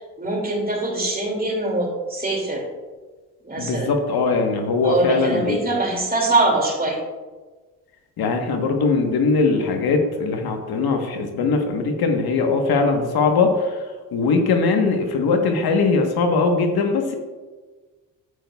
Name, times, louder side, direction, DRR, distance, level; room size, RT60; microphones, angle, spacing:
voice 1, 0.2-2.6 3.4-3.9 4.8-7.0, right 2 dB, 25° right, 0 dB, 2.4 m, -23 dB
voice 2, 3.6-5.6 8.2-13.8 14.1-17.1, left 4 dB, 70° left, 4 dB, 1.2 m, -20 dB
9.3 x 8.7 x 2.3 m, 1.3 s
supercardioid pair, 60°, 38 cm